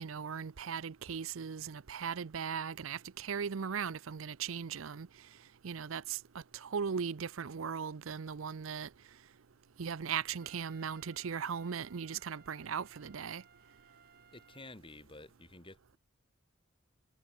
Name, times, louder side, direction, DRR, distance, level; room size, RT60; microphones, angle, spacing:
voice 1, 0.0-5.1 5.6-8.9 9.8-13.4, right 7 dB, 80° right, 0.6 m, -38 dB
Trumpet, 10.4-14.8, right 7 dB, 50° right, 7.7 m, -62 dB
voice 2, 14.3-16.0, left 2 dB, 25° left, 4.1 m, -52 dB
head